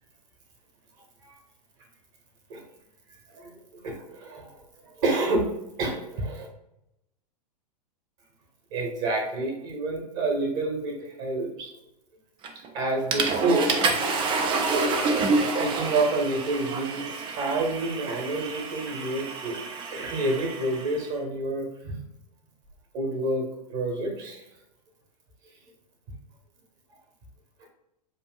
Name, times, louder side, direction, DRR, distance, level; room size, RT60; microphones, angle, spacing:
voice 1, 3.8-4.6 4.8-5.5 5.8-6.5 8.7-11.7 12.7-13.9 15.6-19.6 19.9-22.0 22.9-24.4, right 2 dB, 40° right, 2 dB, 1.7 m, -28 dB
Water / Toilet flush, 12.4-12.7 13.1-21.0, right 3 dB, 25° right, 0.6 m, -28 dB
7.5 x 2.6 x 2.4 m, 0.85 s
figure-of-eight pair, 95°, 21 cm